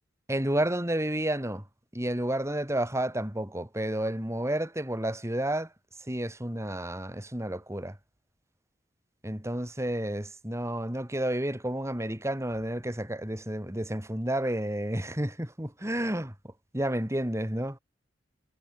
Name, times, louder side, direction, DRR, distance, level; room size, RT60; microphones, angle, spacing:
voice 1, 0.3-1.6 1.9-5.7 6.1-8.0 9.2-16.3 16.7-17.8, right 1 dB, 15° right, 3.0 m, -31 dB
head